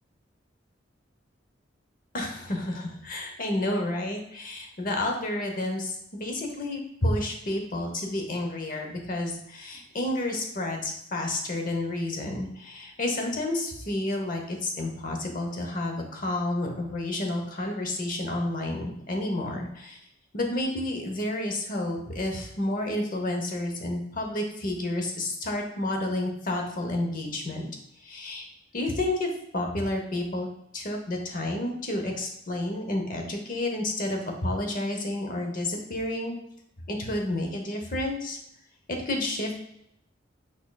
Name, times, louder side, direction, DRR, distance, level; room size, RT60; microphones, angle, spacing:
voice 1, 2.1-20.0 20.3-27.7 28.0-28.5 28.7-30.5 30.7-36.4 36.9-38.4 38.9-39.5, left 1 dB, 45° left, 2 dB, 0.8 m, -30 dB
6.2 x 3.7 x 2.3 m, 0.75 s
head